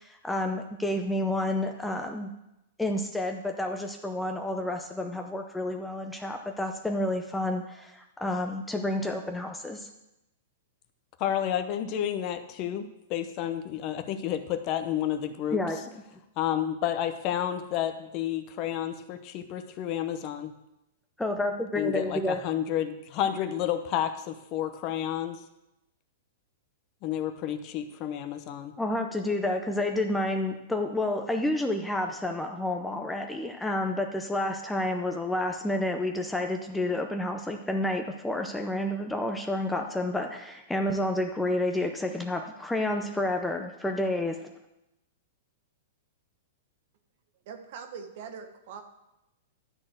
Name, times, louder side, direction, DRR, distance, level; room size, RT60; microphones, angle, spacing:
voice 1, 0.0-2.3 2.8-9.9 15.5-15.9 21.2-22.4 28.8-44.5, left 1 dB, 5° left, 4 dB, 0.5 m, -30 dB
voice 2, 11.2-15.6 16.4-20.5 21.7-25.4 27.0-28.7, left 10 dB, 35° left, 8 dB, 0.8 m, -30 dB
voice 3, 47.5-48.8, right 6 dB, 55° right, 7 dB, 1.3 m, -42 dB
12.0 x 4.3 x 7.8 m, 0.90 s
hypercardioid pair, 155°, 0 cm